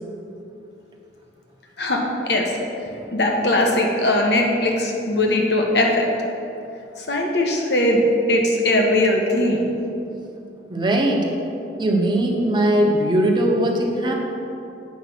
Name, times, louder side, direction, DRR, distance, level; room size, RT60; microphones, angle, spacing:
voice 1, 1.8-2.5 3.1-6.1 7.0-8.0 8.3-9.7, left 1 dB, 70° left, 1 dB, 1.1 m, -20 dB
voice 2, 10.7-11.3 11.8-14.1, right 1 dB, 25° right, 0 dB, 0.9 m, -20 dB
8.4 x 5.3 x 6.0 m, 2.8 s
head